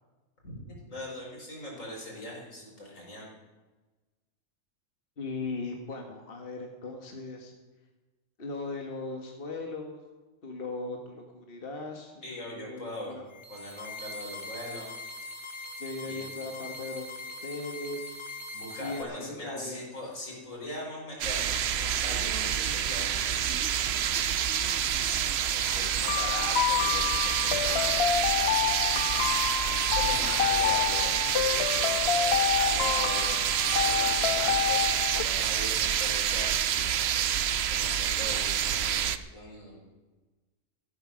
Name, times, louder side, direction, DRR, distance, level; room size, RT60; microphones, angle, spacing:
voice 1, 0.4-3.3 12.2-13.2 13.5-14.9 16.1-16.2 18.5-23.7 25.5-27.9 29.6-31.2 32.5-37.1 37.7-39.9, left 1 dB, 80° left, -2 dB, 4.8 m, -40 dB
voice 2, 5.2-7.5 8.4-10.0 10.4-13.2 15.8-18.2 18.8-19.8, left 3 dB, 45° left, 2 dB, 1.7 m, -38 dB
sound 1, 13.3-19.0, left 2 dB, 20° left, 1.8 m, -41 dB
sound 2, 21.2-39.2, right 9 dB, 60° right, 0.9 m, -28 dB
sound 3, 25.7-35.2, left 10 dB, 65° left, 0.8 m, -28 dB
14.0 x 12.0 x 6.2 m, 1.2 s
omnidirectional pair, 1.3 m